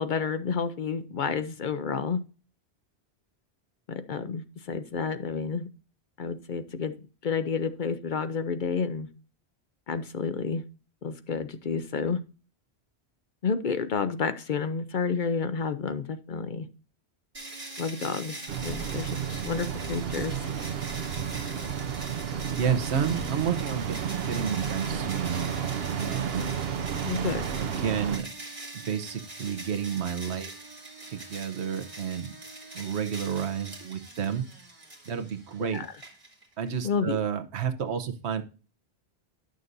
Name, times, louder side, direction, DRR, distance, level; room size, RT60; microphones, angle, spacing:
voice 1, 0.0-2.2 3.9-5.7 6.2-6.9 7.2-9.1 9.9-10.6 11.0-12.2 13.4-16.7 17.8-20.5 27.0-27.5 35.7-35.9 36.8-37.2, left 5 dB, 55° left, 11 dB, 0.7 m, -30 dB
sound 1, 17.3-36.7, right 2 dB, 30° right, 2.2 m, -43 dB
sound 2, 18.5-28.2, right 7 dB, 70° right, 1.0 m, -32 dB
voice 2, 22.6-23.9 24.3-25.5 26.0-26.5 27.6-28.3 28.7-30.5 31.1-32.3 32.7-34.4 35.1-35.8 36.6-38.4, right 7 dB, 85° right, 8 dB, 1.1 m, -30 dB
11.0 x 6.5 x 2.6 m, 0.35 s
omnidirectional pair, 1.1 m